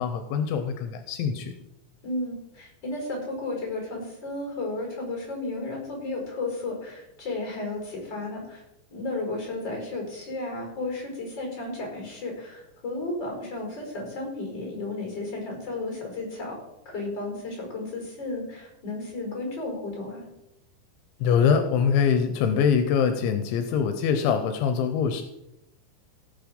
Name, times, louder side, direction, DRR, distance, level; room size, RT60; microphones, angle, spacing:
voice 1, 0.0-1.5 21.2-25.2, left 7 dB, 85° left, 8 dB, 3.2 m, -23 dB
voice 2, 2.0-8.6 8.9-16.6 16.9-20.3, left 2 dB, 25° left, 0 dB, 5.8 m, -33 dB
17.0 x 7.8 x 5.3 m, 0.87 s
omnidirectional pair, 5.3 m